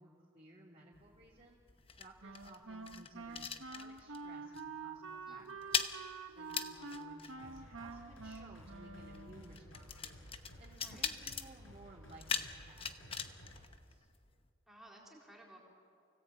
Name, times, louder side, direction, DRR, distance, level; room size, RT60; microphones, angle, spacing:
voice 1, 0.0-1.6 2.0-5.8 6.3-10.2 10.6-14.1, right 1 dB, 30° right, -6 dB, 3.1 m, -58 dB
sound 1, 0.9-4.3 4.5-4.8 5.1-14.5, left 6 dB, 25° left, 0.9 m, -42 dB
Wind instrument woodwind instrument, 2.2-9.6, right 4 dB, 75° right, 1.6 m, -47 dB
sound 2, 7.4-13.6, equal, 75° left, 5.0 m, -56 dB
voice 2, 10.7-11.2 14.7-15.6, right 1 dB, ahead, -2 dB, 4.0 m, -57 dB
29.0 x 18.0 x 8.6 m, 2.4 s
head